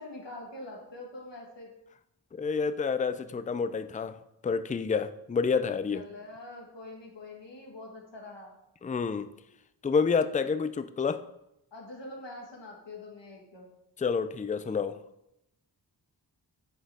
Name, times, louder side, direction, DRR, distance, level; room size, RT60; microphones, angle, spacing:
voice 1, 0.0-1.7 5.9-8.5 11.7-13.7, left 2 dB, 80° left, -1 dB, 1.9 m, -44 dB
voice 2, 2.3-6.0 8.8-9.3 9.8-11.2 14.0-15.0, left 5 dB, 20° left, 13 dB, 0.4 m, -29 dB
9.2 x 6.4 x 3.5 m, 0.83 s
wide cardioid pair, 70°, 43 cm